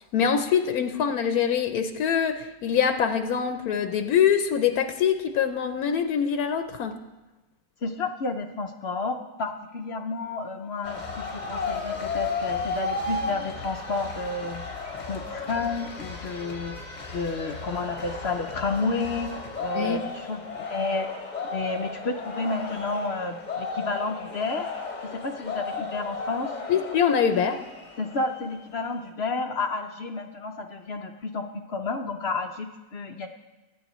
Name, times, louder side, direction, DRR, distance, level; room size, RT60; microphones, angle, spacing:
voice 1, 0.1-6.9 19.7-20.0 26.7-27.6, left 7 dB, 80° left, 7 dB, 1.1 m, -24 dB
voice 2, 7.8-14.6 15.1-16.8 17.1-19.3 19.6-21.1 21.4-24.7 25.0-26.6 28.0-33.3, left 3 dB, 55° left, 5 dB, 0.7 m, -31 dB
sound 1, 10.8-28.6, left 4 dB, 35° left, 1.1 m, -34 dB
20.5 x 9.0 x 3.0 m, 1.1 s
omnidirectional pair, 1.6 m